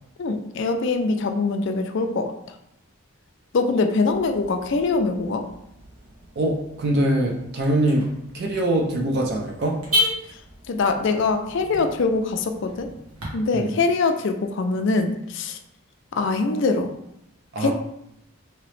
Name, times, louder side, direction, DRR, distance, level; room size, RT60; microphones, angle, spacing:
voice 1, 0.2-2.3 3.5-5.4 10.7-12.9 13.3-15.6 16.2-16.9 17.6-17.7, left 3 dB, 55° left, 5 dB, 0.3 m, -23 dB
Car / Alarm, 4.1-13.3, left 2 dB, 80° right, 1.2 m, -33 dB
voice 2, 6.4-8.1 8.3-9.8 13.5-13.7 17.5-17.7, right 1 dB, 45° right, 1 dB, 0.4 m, -23 dB
2.9 x 2.8 x 3.1 m, 0.79 s
head